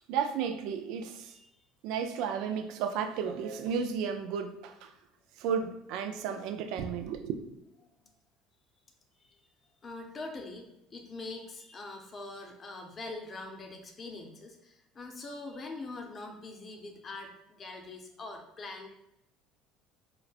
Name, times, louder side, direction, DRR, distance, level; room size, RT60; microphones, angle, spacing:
voice 1, 0.1-1.4 1.8-4.9 5.4-7.3, right 7 dB, 70° right, 8 dB, 0.3 m, -33 dB
voice 2, 9.8-18.9, left 2 dB, 35° left, 3 dB, 0.6 m, -43 dB
3.9 x 2.1 x 2.4 m, 0.84 s
supercardioid pair, 85°, 0 cm